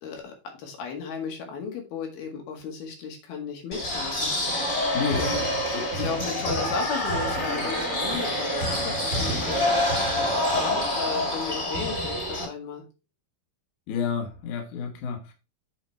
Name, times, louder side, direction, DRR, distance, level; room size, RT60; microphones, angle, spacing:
voice 1, 0.0-4.3 5.1-5.4 5.9-9.6 10.5-12.8, left 5 dB, 85° left, 3.8 m, -35 dB
sound 1, 3.7-12.4, left 1 dB, 20° left, 2.0 m, -26 dB
voice 2, 4.9-5.4 5.7-6.1 13.9-15.3, left 6 dB, 65° left, 2.6 m, -30 dB
7.8 x 4.9 x 4.4 m
omnidirectional pair, 4.2 m